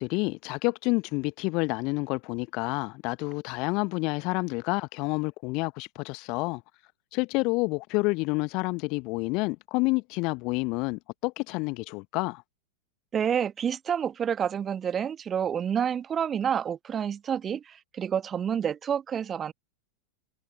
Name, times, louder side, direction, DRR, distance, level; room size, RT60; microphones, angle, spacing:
voice 1, 0.0-6.6 7.1-12.4, left 27 dB, 40° left, 1.1 m, -29 dB
voice 2, 13.1-19.5, right 8 dB, 25° right, 1.6 m, -29 dB
figure-of-eight pair, 90°, 0 cm